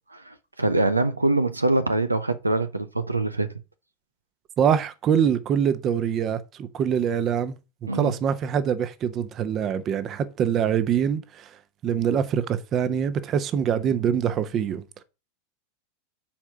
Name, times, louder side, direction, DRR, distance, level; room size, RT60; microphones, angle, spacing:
voice 1, 0.1-3.5 7.9-8.1, right 2 dB, 85° right, 0.7 m, -24 dB
voice 2, 4.6-7.6 7.9-11.5 11.8-14.8, right 8 dB, 35° right, 0.9 m, -24 dB
7.2 x 4.8 x 6.3 m
figure-of-eight pair, 85°, 0 cm